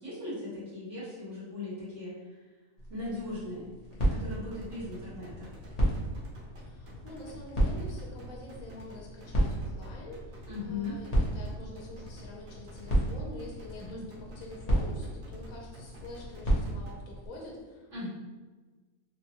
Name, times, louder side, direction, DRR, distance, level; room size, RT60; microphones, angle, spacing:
voice 1, 0.0-2.1 2.9-3.7 4.1-5.5 10.4-11.0 13.8-14.0 17.9-18.1, left 2 dB, 55° right, -10 dB, 1.8 m, -38 dB
sound 1, 2.8-17.3, right 1 dB, 35° left, 0.6 m, -33 dB
sound 2, 3.9-17.0, left 1 dB, 90° right, 1.3 m, -48 dB
voice 2, 6.6-18.1, left 2 dB, 70° left, -2 dB, 1.1 m, -46 dB
3.4 x 2.2 x 2.8 m, 1.3 s
omnidirectional pair, 1.5 m